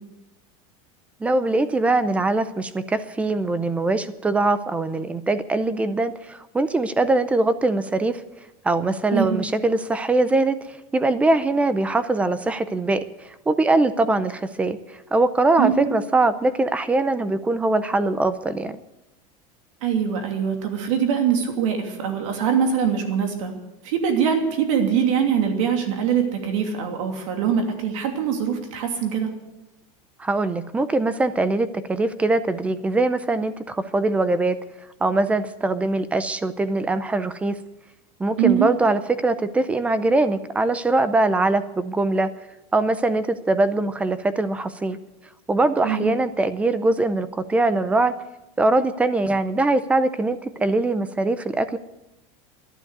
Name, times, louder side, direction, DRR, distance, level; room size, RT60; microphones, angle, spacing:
voice 1, 1.2-8.2 8.6-18.8 30.2-34.6 35.0-37.6 38.2-42.3 42.7-45.0 45.5-48.1 48.6-51.8, right 2 dB, 5° right, 14 dB, 0.5 m, -22 dB
voice 2, 9.1-9.4 15.6-15.9 19.8-23.5 23.8-29.3 38.4-38.7 45.8-46.1, right 7 dB, 70° right, 4 dB, 2.8 m, -23 dB
12.0 x 11.0 x 8.1 m, 0.96 s
supercardioid pair, 165°, 17 cm